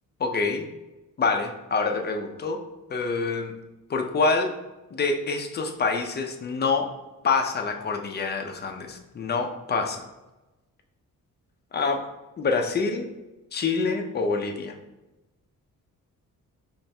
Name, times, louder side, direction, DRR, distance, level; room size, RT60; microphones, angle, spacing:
voice 1, 0.2-0.7 1.2-2.6 2.9-3.5 3.9-4.5 4.9-6.9 7.2-10.1 11.7-12.0 12.4-13.0 13.5-14.7, left 4 dB, 30° left, 4 dB, 0.5 m, -26 dB
4.4 x 3.2 x 3.3 m, 1.1 s
wide cardioid pair, 145°, 33 cm